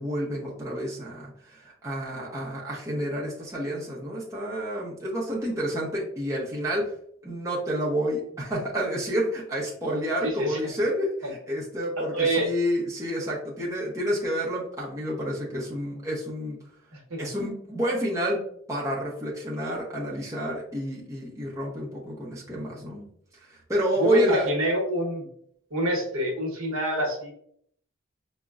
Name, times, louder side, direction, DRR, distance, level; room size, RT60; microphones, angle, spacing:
voice 1, 0.0-6.9 7.2-16.6 17.2-18.4 18.7-23.1 23.4-24.5, equal, 15° right, -5 dB, 0.6 m, -29 dB
voice 2, 10.2-10.6 12.0-12.5 16.9-17.3 24.0-25.3 25.7-27.3, equal, 80° right, 0 dB, 0.9 m, -26 dB
5.0 x 2.1 x 2.3 m, 0.65 s
head